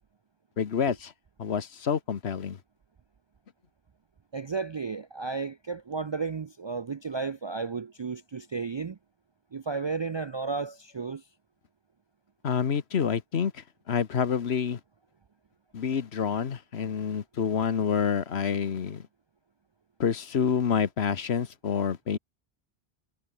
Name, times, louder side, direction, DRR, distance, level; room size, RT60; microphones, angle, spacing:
voice 1, 0.6-1.1 1.4-2.6 12.4-14.8 15.7-19.0 20.0-22.2, left 7 dB, 85° left, 1.4 m, -28 dB
voice 2, 4.3-9.0 9.5-11.2, right 4 dB, 50° right, 0.3 m, -33 dB
omnidirectional pair, 1.0 m